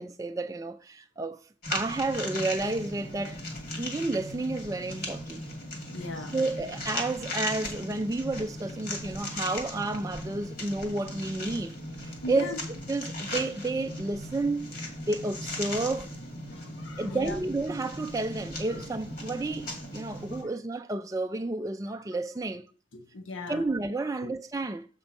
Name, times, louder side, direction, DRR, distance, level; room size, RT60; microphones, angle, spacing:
voice 1, 0.0-1.4 1.7-3.4 3.8-5.4 6.3-11.8 12.0-12.6 12.9-14.8 15.1-16.1 17.0-22.6 23.5-24.9, right 2 dB, 15° right, 0.3 m, -31 dB
sound 1, 1.6-20.4, left 1 dB, 50° left, 1.9 m, -38 dB
voice 2, 5.9-6.3 12.2-12.6 16.6-17.4 18.7-18.8 22.1-22.2 22.9-23.6 24.2-24.4, left 2 dB, 85° left, 0.9 m, -38 dB
7.4 x 4.4 x 5.2 m
head